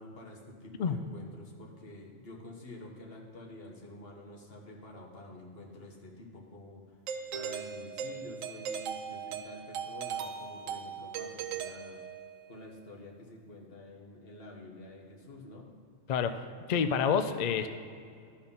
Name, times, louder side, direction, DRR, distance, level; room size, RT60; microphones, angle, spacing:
voice 1, 0.0-6.8 7.3-12.0 12.5-15.7, left 1 dB, 50° left, -1 dB, 1.5 m, -48 dB
Doorbell, 7.1-12.5, right 7 dB, 85° right, 1.0 m, -39 dB
voice 2, 16.1-17.7, left 6 dB, 80° left, 9 dB, 0.3 m, -28 dB
12.5 x 4.5 x 5.4 m, 2.3 s
omnidirectional pair, 1.3 m